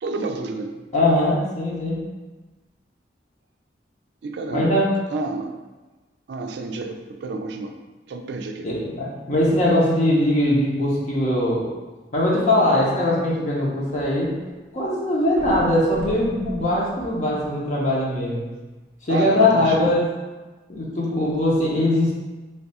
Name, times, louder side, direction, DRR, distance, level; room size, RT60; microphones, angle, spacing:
voice 1, 0.0-0.8 4.2-4.8 5.1-5.6 6.3-7.7 8.1-8.7 19.1-19.9, right 3 dB, 70° right, 5 dB, 0.4 m, -30 dB
voice 2, 0.9-2.0 4.5-4.9 8.6-11.7 12.1-14.3 14.7-18.4 19.0-20.0 20.7-22.1, left 1 dB, 40° left, -5 dB, 0.7 m, -21 dB
sound 1, 13.1-14.5 14.8-14.9 15.3-17.9 18.6-18.7, equal, 15° right, 0.6 m, -39 dB
3.2 x 2.3 x 4.1 m, 1.2 s
head